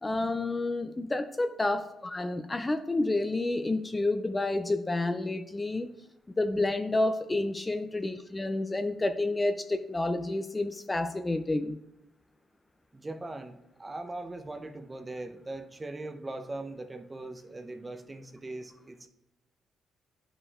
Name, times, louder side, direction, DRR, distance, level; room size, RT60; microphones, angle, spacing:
voice 1, 0.0-5.9 6.4-11.8, left 2 dB, 20° left, 9 dB, 0.4 m, -29 dB
voice 2, 12.9-19.1, right 2 dB, 20° right, 7 dB, 0.7 m, -40 dB
10.5 x 5.0 x 2.4 m, 0.86 s
cardioid pair, 90°, 0 cm